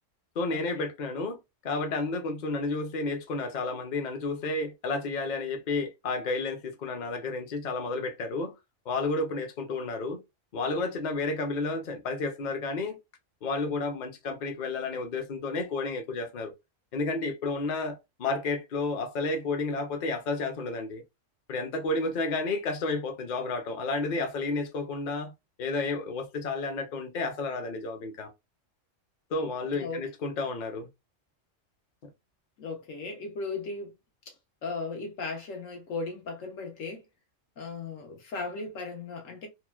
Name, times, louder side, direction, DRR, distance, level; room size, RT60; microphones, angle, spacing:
voice 1, 0.4-1.4 1.6-8.5 8.9-10.2 10.5-13.0 13.4-16.5 16.9-21.0 21.5-25.3 25.6-28.3 29.3-30.9, left 3 dB, 45° left, 0.7 m, -31 dB
voice 2, 29.7-30.0 32.6-33.9 34.3-34.4 34.6-37.0 37.6-39.5, left 3 dB, 85° left, 1.3 m, -36 dB
3.0 x 2.4 x 2.2 m
omnidirectional pair, 1.3 m